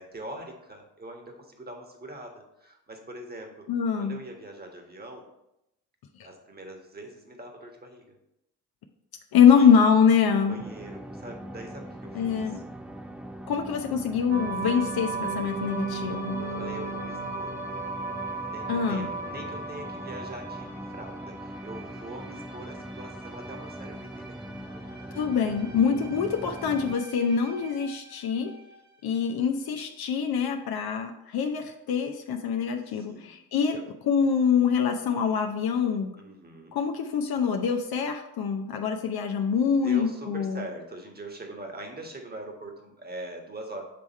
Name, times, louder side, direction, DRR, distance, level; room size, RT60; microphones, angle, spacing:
voice 1, 0.0-3.7 4.0-5.3 6.2-8.2 9.5-9.7 10.1-12.6 16.4-17.5 18.4-25.0 27.2-27.7 32.7-33.3 33.7-33.8 36.2-36.8 39.8-43.8, right 1 dB, 20° right, 2 dB, 1.5 m, -43 dB
voice 2, 3.7-4.2 9.3-10.6 12.1-12.6 13.5-16.5 18.7-19.2 25.1-28.5 29.0-33.8 34.1-36.1 36.7-40.6, left 7 dB, 55° left, 4 dB, 0.7 m, -24 dB
sound 1, 10.6-26.9, equal, 5° right, 0.4 m, -41 dB
sound 2, 14.3-28.8, right 4 dB, 40° right, 1.6 m, -37 dB
7.7 x 3.5 x 4.1 m, 0.85 s
hypercardioid pair, 40°, 45 cm